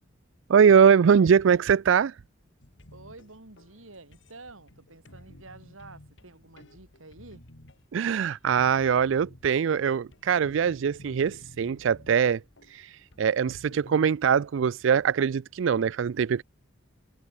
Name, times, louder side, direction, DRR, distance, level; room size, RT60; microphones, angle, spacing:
voice 1, 0.5-2.2 7.9-12.4 12.7-16.4, right 7 dB, 70° right, 0.4 m, -22 dB
sound 1, 2.6-14.2, left 1 dB, 65° left, 2.3 m, -52 dB
voice 2, 2.9-7.4, right 2 dB, 90° right, 5.0 m, -49 dB
head